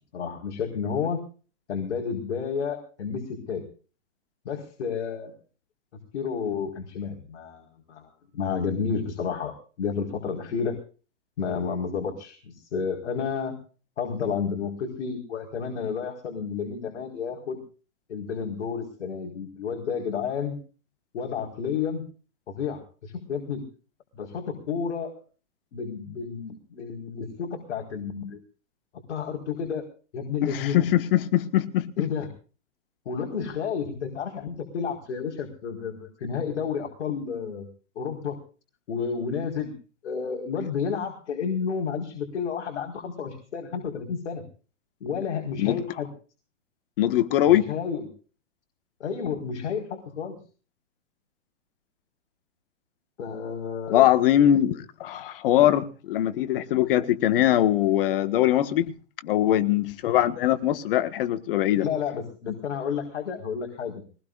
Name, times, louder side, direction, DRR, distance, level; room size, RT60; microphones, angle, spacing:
voice 1, 0.1-1.2 1.7-3.6 4.4-5.3 6.1-10.8 11.4-13.5 14.0-17.6 18.1-20.6 21.1-22.0 22.5-23.6 24.1-25.2 25.7-28.4 29.1-29.9 30.1-30.9 32.0-32.3 33.0-37.7 37.9-38.4 38.9-39.7 40.0-44.4 45.0-46.1 47.5-48.1 49.0-50.4 53.2-54.1 61.8-64.0, left 6 dB, 65° left, 4.9 m, -31 dB
voice 2, 30.4-32.1 45.6-45.8 47.0-47.7 53.9-58.9 59.2-61.9, left 12 dB, 45° left, 1.7 m, -22 dB
22.5 x 20.5 x 2.5 m
hypercardioid pair, 145°, 37 cm